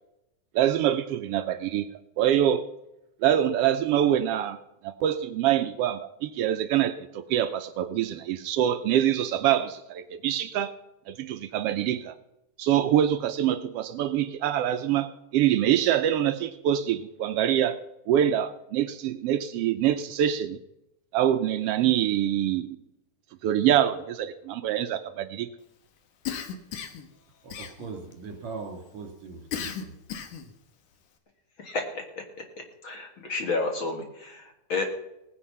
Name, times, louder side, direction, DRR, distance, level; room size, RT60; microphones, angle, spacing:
voice 1, 0.5-1.9 2.2-2.6 3.2-4.6 4.8-10.7 11.1-12.1 12.6-17.8 18.1-20.6 21.1-22.8 23.4-25.5, right 11 dB, 90° right, 1.3 m, -25 dB
Cough, 26.3-27.1 27.5-28.1 29.5-30.5, left 8 dB, 85° left, 3.0 m, -35 dB
voice 2, 27.4-29.9, right 4 dB, 65° right, 3.8 m, -40 dB
voice 3, 31.6-32.5 32.8-34.8, left 3 dB, 45° left, 2.2 m, -31 dB
18.0 x 10.0 x 5.7 m
omnidirectional pair, 3.6 m